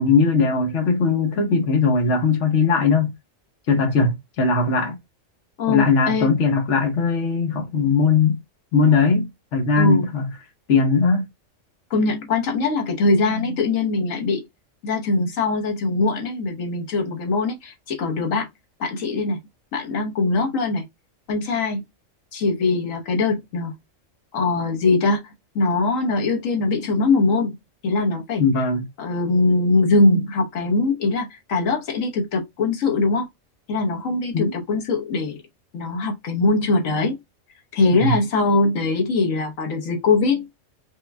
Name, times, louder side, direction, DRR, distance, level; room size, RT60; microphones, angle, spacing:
voice 1, 0.0-3.1 3.7-5.0 5.7-8.4 8.7-10.3 10.7-11.3 28.4-28.8 34.3-34.5 38.0-38.2, left 4 dB, 70° left, 1.2 m, -19 dB
voice 2, 5.6-6.3 9.7-10.1 11.9-14.4 14.8-18.5 18.8-19.4 19.7-20.8 21.3-21.8 22.3-23.7 24.3-27.6 27.8-28.4 29.0-33.3 33.7-35.4 35.7-37.2 37.7-40.4, left 3 dB, 85° left, 1.4 m, -21 dB
5.1 x 2.2 x 3.3 m
omnidirectional pair, 1.3 m